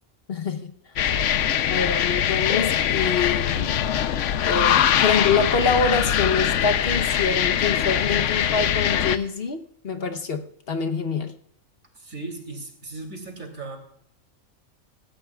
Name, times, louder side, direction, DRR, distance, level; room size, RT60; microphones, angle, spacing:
voice 1, 0.3-0.7 1.7-3.8 4.4-11.3, left 5 dB, 50° left, 1.1 m, -25 dB
sound 1, 1.0-9.2, left 9 dB, 70° left, 1.0 m, -22 dB
voice 2, 11.9-13.8, right 3 dB, 85° right, 3.5 m, -37 dB
24.5 x 13.5 x 2.3 m
omnidirectional pair, 1.4 m